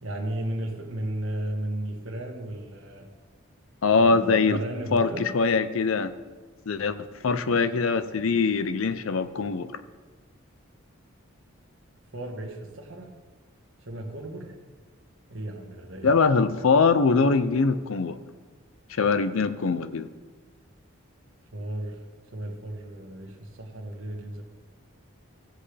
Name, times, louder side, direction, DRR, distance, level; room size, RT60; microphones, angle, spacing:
voice 1, 0.0-3.1 3.9-5.3 12.1-13.1 13.8-14.6 15.3-16.1 21.5-22.0 22.3-24.4, right 1 dB, 70° right, 2 dB, 1.4 m, -34 dB
voice 2, 3.8-4.6 4.9-6.1 6.7-7.0 7.2-9.7 16.0-18.2 19.0-20.1, left 4 dB, 75° left, 12 dB, 0.6 m, -22 dB
16.0 x 7.5 x 3.3 m, 1.4 s
head